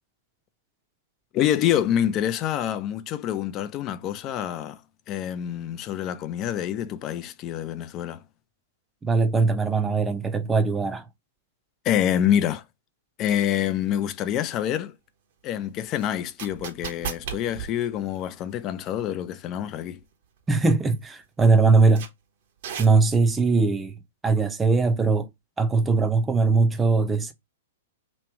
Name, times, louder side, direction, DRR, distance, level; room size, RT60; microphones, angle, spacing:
voice 1, 1.3-4.8 5.1-8.2 11.8-12.6 13.2-14.9 15.4-20.0, left 10 dB, 35° left, 0.5 m, -26 dB
voice 2, 9.0-11.0 20.5-22.0 22.8-23.9 24.2-25.3 25.6-27.3, right 4 dB, 15° right, 0.7 m, -20 dB
sound 1, 14.0-14.1 16.0-18.7 19.0-19.1 19.8-20.0 20.4-20.5 21.0-21.1 22.0-22.1 22.6-23.3, right 8 dB, 60° right, 1.1 m, -36 dB
3.1 x 2.9 x 4.6 m
hypercardioid pair, 120°, 0 cm